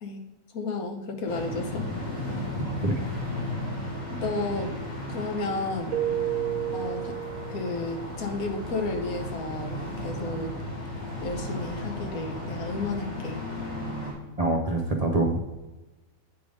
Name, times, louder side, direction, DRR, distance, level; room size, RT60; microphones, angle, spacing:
voice 1, 0.5-1.9 3.7-4.8 5.1-6.0 6.7-7.2 7.5-10.5 10.8-10.9 11.2-13.4, left 3 dB, 90° left, 5 dB, 1.4 m, -32 dB
sound 1, 1.3-14.1, left 1 dB, 70° left, 2.7 m, -34 dB
voice 2, 2.6-3.0 14.4-15.4, right 2 dB, 35° right, 1 dB, 0.6 m, -25 dB
Keyboard (musical), 5.9-7.9, right 13 dB, 80° right, 1.0 m, -30 dB
8.4 x 3.5 x 5.2 m, 1.1 s
omnidirectional pair, 1.5 m